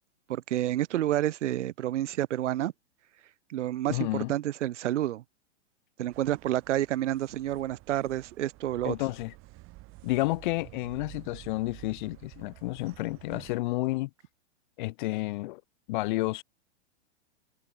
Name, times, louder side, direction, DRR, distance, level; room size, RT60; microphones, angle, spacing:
voice 1, 0.3-2.7 3.5-5.2 6.0-9.0, right 13 dB, 75° right, 0.6 m, -29 dB
voice 2, 3.9-4.3 8.8-9.3 10.0-14.1 14.8-15.6 15.9-16.4, left 20 dB, 45° left, 0.5 m, -30 dB
sound 1, 6.1-13.6, right 21 dB, 35° right, 2.0 m, -51 dB
hypercardioid pair, 115°, 36 cm